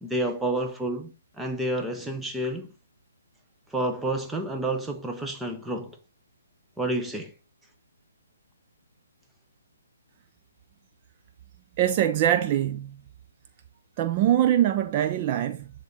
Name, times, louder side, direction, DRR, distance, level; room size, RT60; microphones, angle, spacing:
voice 1, 0.0-2.7 3.7-6.0 6.8-7.3, right 1 dB, 5° right, 0.9 m, -29 dB
voice 2, 11.8-13.0 14.0-15.7, right 11 dB, 35° right, 0.5 m, -23 dB
10.5 x 3.6 x 4.0 m
hypercardioid pair, 145°, 0 cm